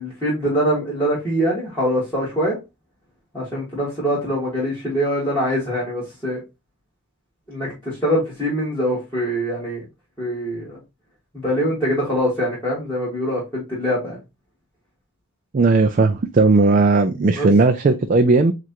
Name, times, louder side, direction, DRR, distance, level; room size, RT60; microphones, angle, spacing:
voice 1, 0.0-2.6 3.3-6.4 7.5-9.8 10.2-10.8 11.3-14.2 17.3-17.5, equal, 10° left, 1.7 m, -23 dB
voice 2, 15.5-18.5, right 3 dB, 35° right, 0.3 m, -16 dB
7.4 x 2.5 x 2.8 m
head